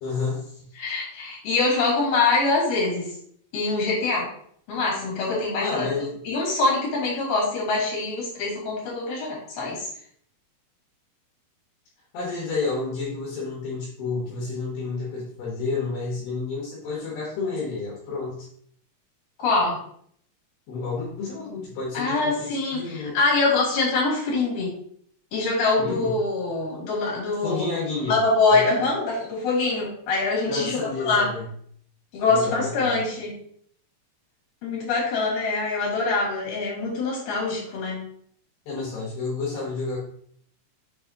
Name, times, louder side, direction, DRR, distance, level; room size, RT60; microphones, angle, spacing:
voice 1, 0.0-1.0 5.6-6.2 12.1-18.5 20.7-23.1 25.8-26.2 27.4-28.2 28.5-28.9 30.4-31.5 32.3-33.0 38.7-40.0, left 4 dB, 75° left, -5 dB, 3.3 m, -30 dB
voice 2, 0.8-3.1 3.5-4.3 4.7-5.9 6.2-9.9 19.4-19.8 21.9-24.7 25.3-27.7 28.1-31.3 32.1-33.3 34.6-38.0, left 3 dB, 50° left, -5 dB, 3.7 m, -24 dB
7.3 x 4.8 x 2.9 m, 0.64 s
omnidirectional pair, 4.9 m